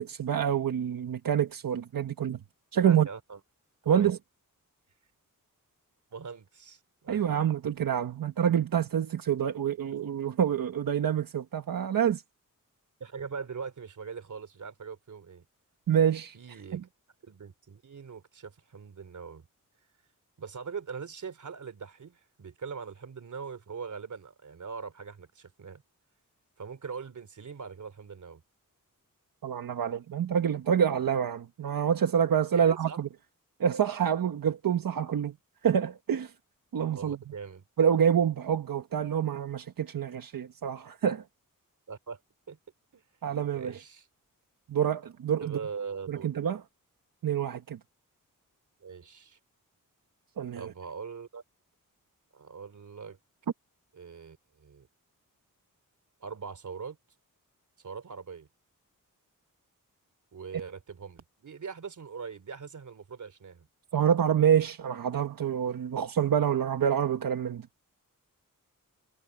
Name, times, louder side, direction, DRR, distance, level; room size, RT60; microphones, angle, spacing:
voice 1, 0.0-2.4 2.7-3.1 3.8-4.2 7.1-12.2 15.9-16.4 16.7-16.8 29.4-33.1 33.6-35.3 35.6-36.3 36.7-37.2 37.8-41.2 43.2-43.8 44.7-45.6 46.1-46.6 47.2-47.8 50.4-50.7 63.9-67.7, right 8 dB, 90° right, 1.3 m, -27 dB
voice 2, 2.8-3.4 3.9-4.1 6.1-7.4 13.0-15.4 16.3-16.9 17.2-19.5 20.4-25.8 26.6-28.4 32.5-33.0 36.9-37.6 41.9-42.2 42.5-42.6 42.9-43.0 43.5-44.1 45.4-46.3 48.8-49.4 50.5-51.4 52.3-53.2 53.9-54.9 56.2-57.0 57.8-58.5 60.3-63.7, right 5 dB, 60° right, 3.4 m, -41 dB
wide cardioid pair, 165°, 33 cm